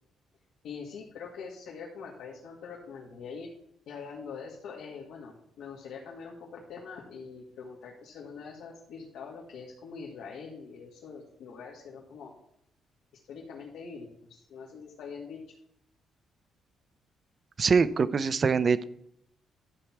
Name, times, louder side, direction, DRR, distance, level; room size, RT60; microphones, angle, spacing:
voice 1, 0.6-3.5 3.9-12.3 13.3-15.4, left 5 dB, 85° left, -3 dB, 2.0 m, -43 dB
voice 2, 17.6-18.8, right 5 dB, 30° right, 15 dB, 0.5 m, -23 dB
12.5 x 4.6 x 7.1 m, 0.73 s
cardioid pair, 160°, 0 cm